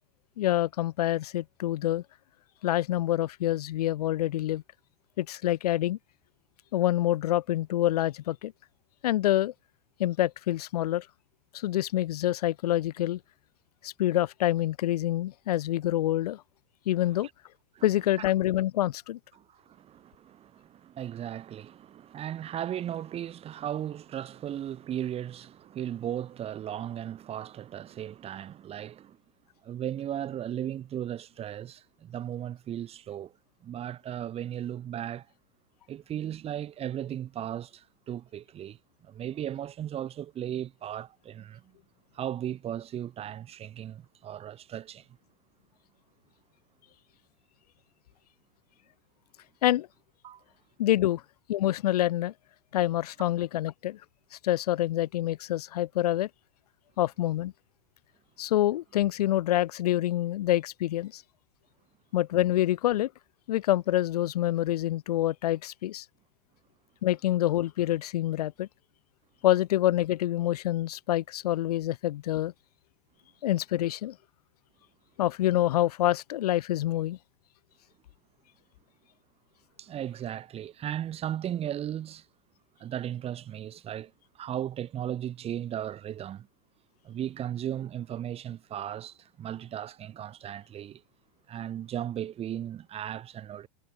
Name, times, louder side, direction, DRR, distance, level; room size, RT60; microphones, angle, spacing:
voice 1, 0.4-2.0 2.6-4.6 5.2-6.0 6.7-8.5 9.0-9.5 10.0-11.1 11.5-13.2 13.8-16.4 16.9-17.3 17.8-19.2 49.6-49.9 50.8-51.2 51.5-52.3 52.7-54.0 54.4-56.3 57.0-57.5 58.4-61.2 62.1-63.1 63.5-66.0 67.0-68.7 69.4-72.5 73.4-74.2 75.2-77.2, left 14 dB, 75° left, 0.5 m, -26 dB
voice 2, 19.3-29.2 29.6-33.3 33.6-35.3 35.9-41.8 42.1-45.1 50.2-50.4 79.8-82.2 82.8-86.5 87.0-91.0 91.5-93.7, right 10 dB, 30° right, 1.3 m, -36 dB
hypercardioid pair, 95°, 20 cm